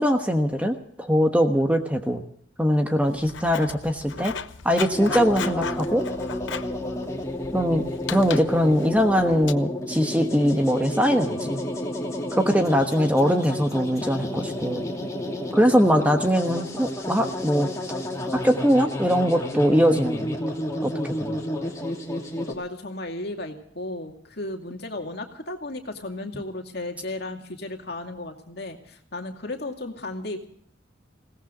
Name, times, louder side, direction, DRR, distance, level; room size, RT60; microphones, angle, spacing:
voice 1, 0.0-2.2 2.6-4.3 4.6-6.0 7.5-11.6 12.3-14.9 15.5-17.7 18.3-20.4 20.8-21.4, equal, 5° right, 5 dB, 1.2 m, -22 dB
Writing, 3.0-9.5, left 6 dB, 70° left, 0.9 m, -37 dB
sound 1, 4.9-22.5, left 1 dB, 15° left, 2.8 m, -31 dB
voice 2, 22.5-30.5, left 2 dB, 55° left, 3 dB, 2.4 m, -34 dB
21.0 x 17.5 x 3.8 m, 0.63 s
head